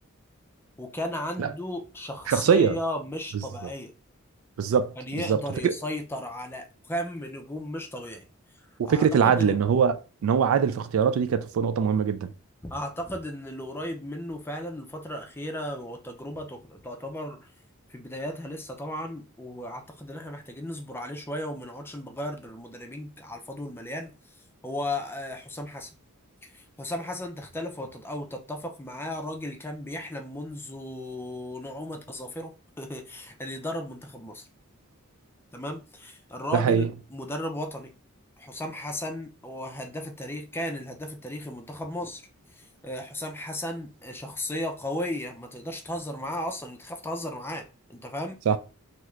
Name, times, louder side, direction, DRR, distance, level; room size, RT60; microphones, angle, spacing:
voice 1, 0.8-3.9 5.0-8.2 8.8-9.6 12.6-17.5 17.9-24.1 24.6-25.9 26.5-32.5 32.8-34.4 35.5-37.9 38.4-42.2 42.6-48.4, left 1 dB, 10° left, 0.4 m, -35 dB
voice 2, 2.3-2.8 4.6-5.7 8.8-12.3 36.5-36.9 48.5-48.6, right 7 dB, 70° right, 0.3 m, -23 dB
2.8 x 2.5 x 3.2 m
head